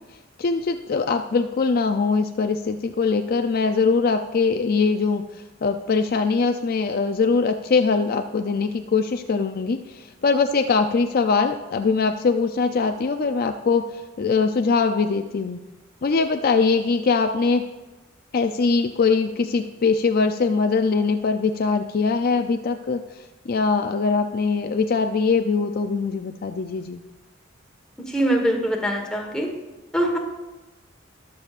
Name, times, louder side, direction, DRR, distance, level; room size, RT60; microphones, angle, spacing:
voice 1, 0.4-5.2 5.6-13.8 14.2-15.6 16.0-17.6 18.3-23.0 23.5-27.0, left 4 dB, 45° left, 7 dB, 0.4 m, -22 dB
voice 2, 28.1-29.5 29.9-30.2, right 1 dB, 5° left, 1 dB, 1.3 m, -22 dB
20.0 x 7.0 x 2.5 m, 1.1 s
head